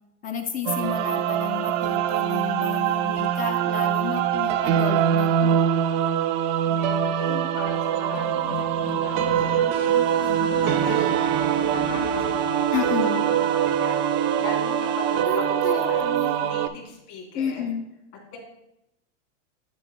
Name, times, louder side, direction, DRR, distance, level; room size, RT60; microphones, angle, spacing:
voice 1, 0.2-5.6 12.7-13.2 15.3-16.4 17.3-17.8, left 7 dB, 20° left, 6 dB, 0.4 m, -31 dB
sound 1, 0.7-16.7, right 10 dB, 40° right, 0.4 m, -24 dB
voice 2, 6.7-11.2 11.7-16.1 16.4-17.6 18.3-18.4, left 4 dB, 50° left, -1 dB, 2.5 m, -39 dB
sound 2, 8.1-12.9, left 8 dB, 85° left, 0.8 m, -38 dB
sound 3, 9.7-15.7, right 6 dB, 75° right, 0.8 m, -30 dB
10.5 x 4.3 x 3.0 m, 0.86 s
supercardioid pair, 125°, 38 cm